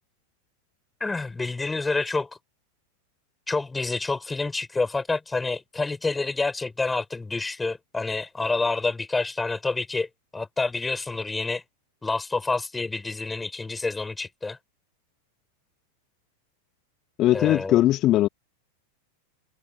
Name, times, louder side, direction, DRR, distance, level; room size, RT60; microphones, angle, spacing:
voice 1, 1.0-2.3 3.5-11.6 12.0-14.6 17.3-17.8, left 3 dB, 10° left, 6.3 m, -28 dB
voice 2, 17.2-18.3, left 14 dB, 35° left, 2.3 m, -20 dB
figure-of-eight pair, 90°, 0 cm